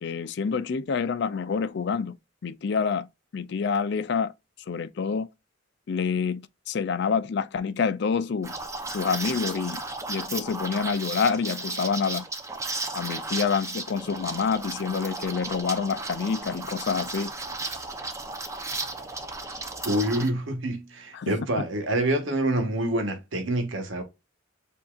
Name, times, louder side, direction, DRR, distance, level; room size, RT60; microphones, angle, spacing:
voice 1, 0.0-2.2 2.4-3.1 3.3-4.3 4.7-5.3 5.9-8.5 8.9-9.8 10.1-12.3 12.9-17.3 21.1-21.7, left 5 dB, 60° left, 0.4 m, -27 dB
Liquid, 8.4-20.3, right 3 dB, 15° right, 0.7 m, -35 dB
voice 2, 19.8-24.0, right 1 dB, 85° right, 1.2 m, -26 dB
7.0 x 2.8 x 2.4 m
head